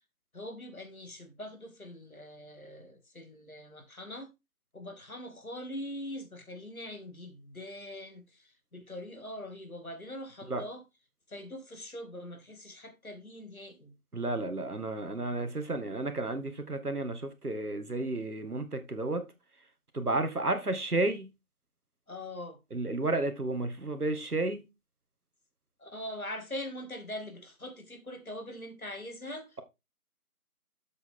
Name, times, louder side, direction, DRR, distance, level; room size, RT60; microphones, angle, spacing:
voice 1, 0.3-4.3 4.7-10.8 11.3-14.0 22.1-22.6 25.8-29.6, left 1 dB, 65° left, 2.7 m, -42 dB
voice 2, 14.1-19.3 19.9-21.3 22.7-24.7, right 2 dB, 80° right, 2.1 m, -32 dB
7.9 x 6.9 x 3.8 m
figure-of-eight pair, 175°, 45 cm